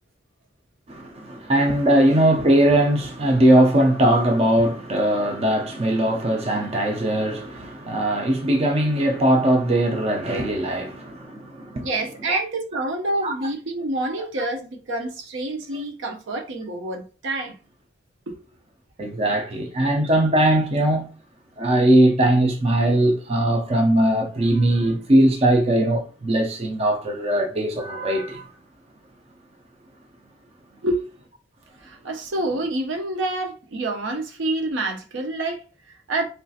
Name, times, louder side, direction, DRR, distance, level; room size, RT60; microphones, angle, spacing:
voice 1, 0.9-11.9 12.3-12.4 13.2-13.4 19.0-21.1 21.6-28.4, right 1 dB, 30° right, 0.4 m, -20 dB
voice 2, 11.8-17.6 18.3-18.4 30.8-31.0 31.8-36.2, right 2 dB, 70° right, 0.6 m, -28 dB
3.1 x 2.7 x 2.4 m
head